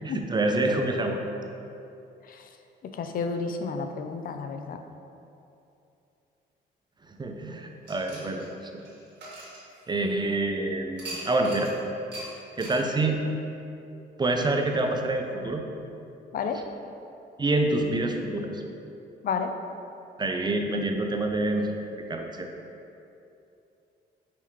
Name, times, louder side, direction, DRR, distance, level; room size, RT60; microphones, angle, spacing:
voice 1, 0.0-1.2 7.1-8.4 8.7-8.8 9.9-11.7 12.6-13.2 14.2-15.6 17.4-18.6 20.2-21.8 22.1-22.5, right 2 dB, 20° right, 3 dB, 0.4 m, -27 dB
voice 2, 2.8-4.8 16.3-16.6 19.2-19.5, left 5 dB, 45° left, 6 dB, 0.4 m, -31 dB
sound 1, 7.8-10.2 11.0-11.7 12.1-12.3 12.6-12.8, right 1 dB, 60° right, 1.5 m, -41 dB
5.6 x 2.9 x 3.0 m, 2.7 s
cardioid pair, 90°, 20 cm